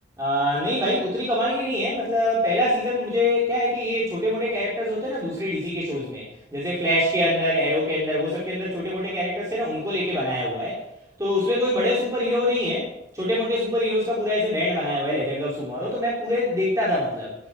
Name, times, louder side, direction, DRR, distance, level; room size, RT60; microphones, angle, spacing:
voice 1, 0.2-6.2 6.5-10.8 11.2-12.9 13.1-17.4, left 1 dB, 20° right, -7 dB, 3.9 m, -24 dB
12.5 x 10.0 x 7.6 m, 0.82 s
head